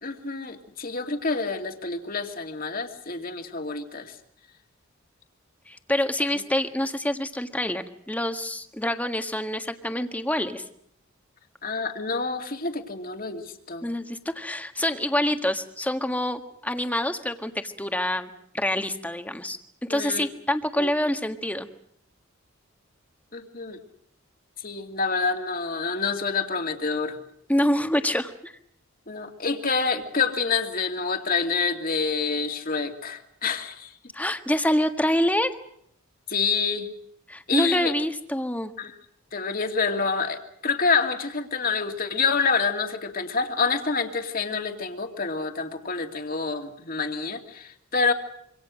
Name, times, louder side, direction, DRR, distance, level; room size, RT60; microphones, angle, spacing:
voice 1, 0.0-4.2 6.3-6.4 11.6-13.9 19.9-20.3 20.8-20.9 23.3-23.8 24.6-27.2 29.1-33.9 36.3-36.9 37.5-37.9 38.8-38.9 39.3-48.1, left 4 dB, 40° left, 5 dB, 2.5 m, -27 dB
voice 2, 5.7-10.6 13.8-21.7 27.5-28.5 34.1-35.5 37.3-38.7, left 1 dB, 5° left, 7 dB, 1.6 m, -26 dB
26.5 x 25.5 x 6.4 m, 0.70 s
head